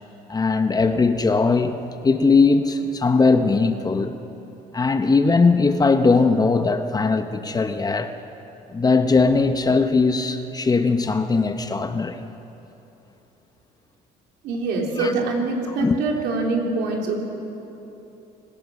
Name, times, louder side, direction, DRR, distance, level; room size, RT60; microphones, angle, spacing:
voice 1, 0.3-1.8 2.0-4.1 4.7-8.1 8.7-12.2 14.8-15.1 15.8-16.0, left 4 dB, 20° left, 1.0 m, -19 dB
voice 2, 14.4-17.2, right 3 dB, 80° right, 3.5 m, -24 dB
25.0 x 16.5 x 6.4 m
cardioid pair, 110°, 17 cm